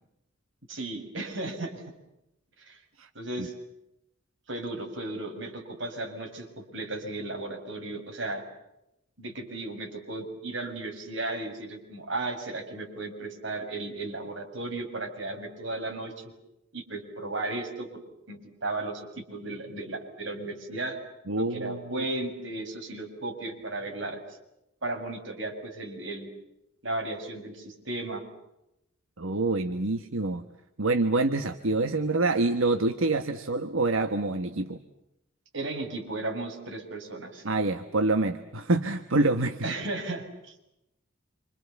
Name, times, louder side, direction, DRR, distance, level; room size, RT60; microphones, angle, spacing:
voice 1, 0.7-1.8 2.6-2.8 3.1-3.6 4.5-8.4 9.2-16.3 16.7-18.0 18.3-21.0 21.4-24.2 24.8-26.3 26.8-28.2 35.5-37.4 39.6-40.5, right 2 dB, 60° right, 2 dB, 7.2 m, -35 dB
voice 2, 21.3-22.0 29.2-30.5 30.8-34.8 37.4-39.6, right 2 dB, 80° right, 8 dB, 1.4 m, -26 dB
28.0 x 27.5 x 7.2 m, 0.85 s
head